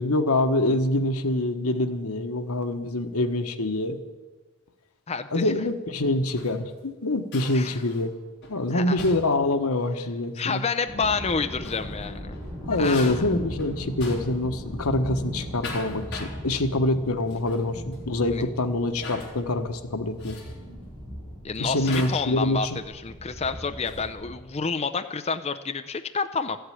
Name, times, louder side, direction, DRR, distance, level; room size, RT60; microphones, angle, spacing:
voice 1, 0.0-4.0 5.3-8.1 8.5-10.6 12.6-20.4 21.6-22.8, left 2 dB, 85° left, 7 dB, 1.2 m, -25 dB
voice 2, 5.1-5.5 7.5-7.8 8.7-9.0 10.4-12.4 12.8-13.2 18.3-18.4 21.4-22.7 22.9-26.6, left 5 dB, 30° left, 8 dB, 0.5 m, -29 dB
sound 1, 6.1-6.7 7.3-8.1 8.4-8.6 9.0-9.4 11.4-11.9 12.3-14.5 14.8-15.1 15.4-16.4 17.3-17.7 17.9-18.0 19.0-19.3 20.2-20.6 21.9-22.3 23.4-24.2, left 2 dB, 50° left, 3.8 m, -40 dB
sound 2, 10.9-24.4, equal, 25° right, 6.2 m, -38 dB
14.5 x 7.8 x 9.9 m, 1.3 s
head